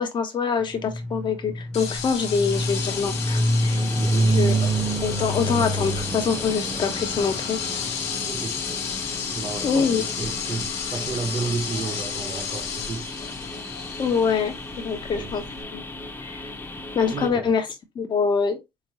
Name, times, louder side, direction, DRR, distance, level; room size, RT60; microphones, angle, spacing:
voice 1, 0.0-3.8 4.2-4.7 5.0-7.6 9.6-10.0 14.0-15.4 15.7-15.8 16.2-16.4 16.9-17.6 17.9-18.6, left 5 dB, 45° left, 0.9 m, -25 dB
sound 1, 0.8-10.8, right 1 dB, 5° right, 1.0 m, -27 dB
sound 2, 1.7-15.6, left 7 dB, 75° left, 0.7 m, -33 dB
sound 3, 2.5-17.3, left 2 dB, 20° left, 0.9 m, -38 dB
voice 2, 4.0-4.3 8.2-8.6 9.3-13.2 15.2-15.3 17.1-17.5, right 4 dB, 35° right, 0.6 m, -32 dB
3.5 x 3.0 x 2.9 m
supercardioid pair, 75°, 11 cm